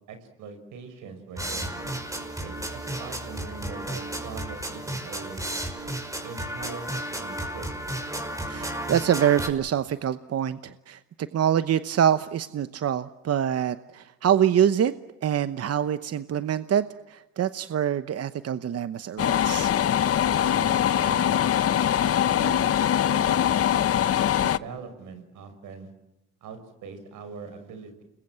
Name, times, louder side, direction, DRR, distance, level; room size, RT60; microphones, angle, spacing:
voice 1, 0.1-1.7 2.4-5.5 6.2-7.7 20.3-21.5 22.0-22.6 23.1-23.6 24.4-25.9 26.4-28.0, right 5 dB, 85° right, 8 dB, 5.9 m, -42 dB
sound 1, 1.4-9.5, right 1 dB, 10° right, 5.5 m, -33 dB
voice 2, 8.4-14.9 15.2-19.7, right 9 dB, 55° right, 12 dB, 1.0 m, -25 dB
sound 2, 19.2-24.6, left 10 dB, 50° left, 0.8 m, -22 dB
30.0 x 21.5 x 7.5 m, 0.97 s
cardioid pair, 90°, 30 cm